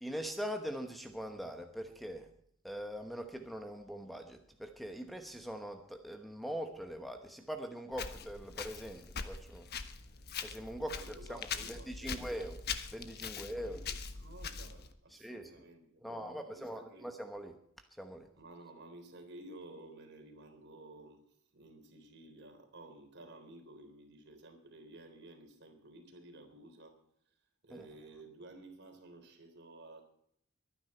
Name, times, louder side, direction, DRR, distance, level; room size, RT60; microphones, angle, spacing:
voice 1, 0.0-2.3 2.6-9.7 10.4-11.0 11.3-12.6 12.9-13.8 15.2-15.5 16.0-17.6 18.0-18.3 27.7-27.8, equal, ahead, 6 dB, 1.0 m, -42 dB
Walk footsteps, 7.9-14.9, left 6 dB, 50° left, 1.2 m, -42 dB
voice 2, 10.9-12.5 13.3-17.1 18.3-27.0 27.3-30.0, right 2 dB, 55° right, 4 dB, 3.7 m, -54 dB
22.5 x 9.9 x 4.4 m, 0.69 s
head